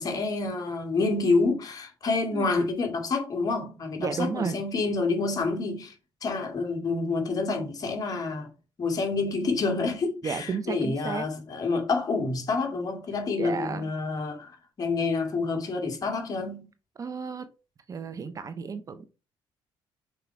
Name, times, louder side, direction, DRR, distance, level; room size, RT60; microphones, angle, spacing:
voice 1, 0.0-5.9 6.2-8.5 8.8-16.7, left 3 dB, 40° left, 2.3 m, -28 dB
voice 2, 4.0-4.6 10.2-11.3 13.4-13.9 17.0-17.5 17.9-19.1, right 5 dB, 35° right, 0.7 m, -32 dB
6.0 x 4.6 x 4.6 m
cardioid pair, 110°, 10 cm